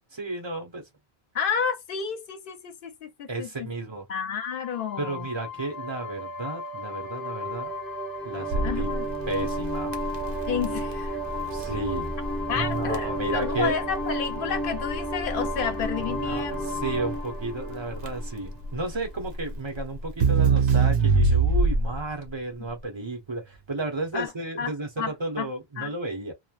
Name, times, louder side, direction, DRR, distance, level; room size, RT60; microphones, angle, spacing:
voice 1, 0.1-0.8 3.3-4.1 5.0-7.7 8.2-8.9 9.3-9.9 11.5-12.2 12.5-13.8 16.1-26.3, right 2 dB, 30° right, 0.8 m, -33 dB
voice 2, 1.3-3.7 4.1-5.3 8.6-9.1 10.5-11.2 12.5-16.8 24.1-24.3 24.6-24.7 25.0-25.5 25.8-25.9, left 7 dB, 65° left, 0.7 m, -31 dB
sound 1, 4.4-18.8, equal, ahead, 0.8 m, -33 dB
Crackle, 8.5-22.1, right 4 dB, 65° right, 0.8 m, -26 dB
3.1 x 2.1 x 2.4 m
omnidirectional pair, 1.0 m